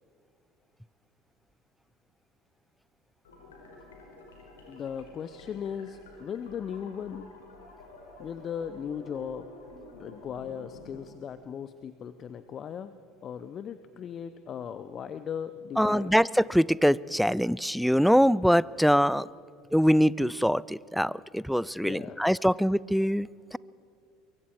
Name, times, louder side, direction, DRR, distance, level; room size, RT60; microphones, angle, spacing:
sound 1, 3.2-11.0, left 2 dB, 80° left, 4.8 m, -50 dB
voice 1, 4.7-7.3 8.2-9.5 10.0-12.9 13.2-16.2 21.8-22.2, left 8 dB, 40° left, 12 dB, 0.8 m, -37 dB
voice 2, 15.8-19.3 19.7-23.6, equal, ahead, 22 dB, 0.4 m, -23 dB
24.0 x 23.5 x 4.6 m, 2.2 s
hypercardioid pair, 70°, 0 cm